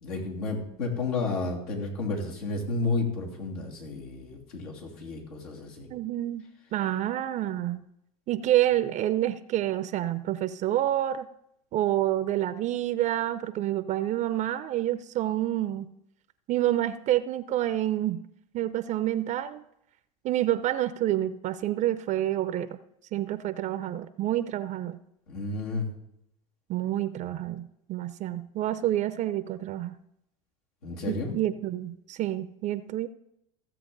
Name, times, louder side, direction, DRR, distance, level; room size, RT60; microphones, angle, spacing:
voice 1, 0.0-5.9 25.3-25.9 30.8-31.3, left 3 dB, 80° left, -2 dB, 3.0 m, -32 dB
voice 2, 5.9-7.9 8.3-11.3 11.7-15.9 16.5-18.2 18.5-19.6 20.2-22.7 23.1-25.0 26.7-30.0 31.1-33.1, right 13 dB, 40° right, 14 dB, 0.5 m, -28 dB
15.5 x 7.8 x 3.9 m, 0.78 s
hypercardioid pair, 105°, 19 cm